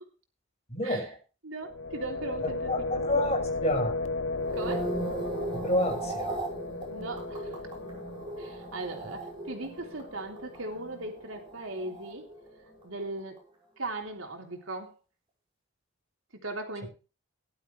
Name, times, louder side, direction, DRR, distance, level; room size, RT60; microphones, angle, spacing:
voice 1, 0.7-1.2 2.7-4.0 5.5-6.4, left 1 dB, 30° left, 2 dB, 5.9 m, -29 dB
voice 2, 1.4-3.0 4.6-4.9 6.9-7.5 8.4-12.3 12.8-13.4 13.8-14.9 16.4-16.9, right 2 dB, 80° right, 3 dB, 3.4 m, -38 dB
sound 1, 1.6-11.5, left 3 dB, 75° left, 0.9 m, -36 dB
sound 2, 4.3-12.7 13.0-13.4, right 2 dB, 25° right, 5.5 m, -38 dB
18.5 x 12.0 x 3.3 m, 0.33 s
head